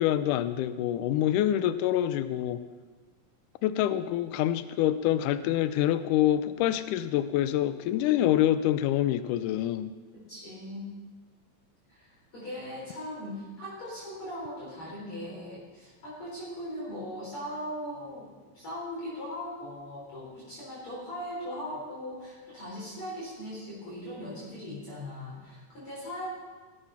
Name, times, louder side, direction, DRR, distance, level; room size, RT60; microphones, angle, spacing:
voice 1, 0.0-2.6 3.6-9.9, left 12 dB, 85° left, 13 dB, 2.1 m, -26 dB
voice 2, 10.3-10.9 11.9-26.3, left 1 dB, 45° left, -7 dB, 5.0 m, -39 dB
18.0 x 8.9 x 5.8 m, 1.3 s
omnidirectional pair, 3.6 m